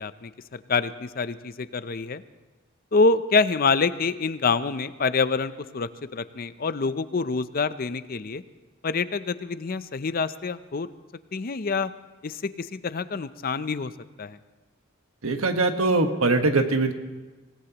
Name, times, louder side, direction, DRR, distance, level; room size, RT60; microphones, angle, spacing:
voice 1, 0.0-2.2 2.9-8.4 8.8-10.9 11.3-11.9 12.2-13.9 14.2-14.4, left 4 dB, 45° left, 13 dB, 0.5 m, -26 dB
voice 2, 15.2-16.9, right 3 dB, 85° right, 6 dB, 1.4 m, -22 dB
26.0 x 17.5 x 3.0 m, 1.2 s
head